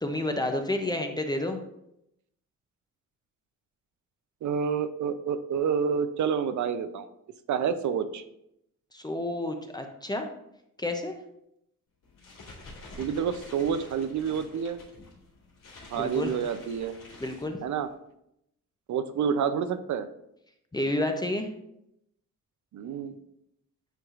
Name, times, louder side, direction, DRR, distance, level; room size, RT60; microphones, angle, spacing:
voice 1, 0.0-1.6 8.9-10.3 10.8-11.2 15.9-16.3 17.2-17.6 20.7-21.5, left 1 dB, 15° left, 4 dB, 0.5 m, -30 dB
voice 2, 4.4-7.1 7.5-8.2 13.0-14.8 15.9-17.0 17.6-17.9 18.9-20.1 22.7-23.2, right 7 dB, 65° right, 11 dB, 0.5 m, -28 dB
sound 1, 12.0-17.9, left 2 dB, 85° left, 2.5 m, -48 dB
9.1 x 4.7 x 2.4 m, 0.80 s
wide cardioid pair, 160°, 31 cm